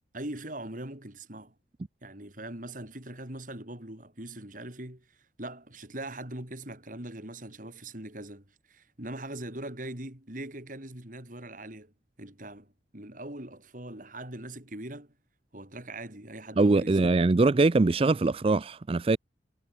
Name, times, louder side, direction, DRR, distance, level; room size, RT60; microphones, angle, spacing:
voice 1, 0.1-1.5 2.0-5.1 5.4-11.9 12.2-15.1 15.5-17.0, right 1 dB, 45° right, 4.4 m, -41 dB
voice 2, 16.6-19.2, right 3 dB, 30° right, 0.4 m, -22 dB
head